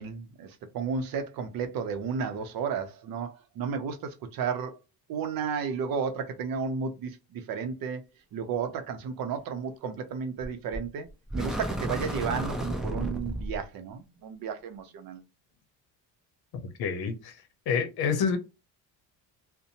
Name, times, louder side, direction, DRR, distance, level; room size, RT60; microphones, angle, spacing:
voice 1, 0.0-4.8 5.1-8.0 8.3-15.2, right 6 dB, 60° right, 0.6 m, -33 dB
sound 1, 10.4-10.9 11.3-13.6, right 1 dB, ahead, 0.4 m, -33 dB
voice 2, 16.8-17.3 17.7-18.4, left 6 dB, 70° left, 0.7 m, -27 dB
2.6 x 2.1 x 2.8 m
cardioid pair, 125°, 40 cm